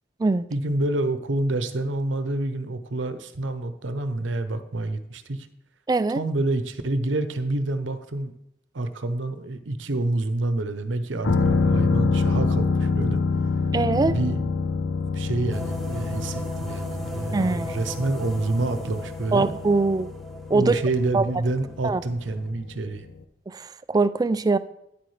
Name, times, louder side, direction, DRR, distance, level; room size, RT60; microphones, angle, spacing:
voice 1, 0.5-5.5 6.1-8.3 8.7-13.2 14.1-14.5 15.1-19.5 20.5-23.1, right 2 dB, 90° right, 10 dB, 0.8 m, -27 dB
voice 2, 5.9-6.2 13.7-14.2 17.3-17.8 19.3-20.1 20.5-20.8 21.1-21.2 21.8-22.0 23.5-24.6, right 3 dB, 20° right, 14 dB, 0.3 m, -22 dB
sound 1, 11.2-22.8 23.1-23.2, left 4 dB, 75° left, 0.6 m, -26 dB
sound 2, 15.5-22.5, right 1 dB, ahead, 1.1 m, -40 dB
10.0 x 8.6 x 3.3 m, 0.81 s
head